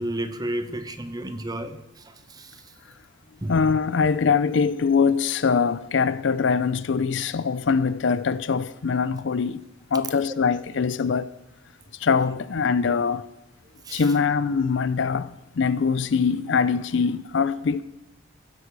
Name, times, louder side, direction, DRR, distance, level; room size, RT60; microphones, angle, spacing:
voice 1, 0.0-2.6 3.4-3.6 13.9-14.0, right 1 dB, 20° right, 0.8 m, -32 dB
voice 2, 3.5-9.6 9.9-11.3 12.0-13.2 13.9-17.8, left 5 dB, 60° left, 0.5 m, -23 dB
16.0 x 8.4 x 4.7 m
head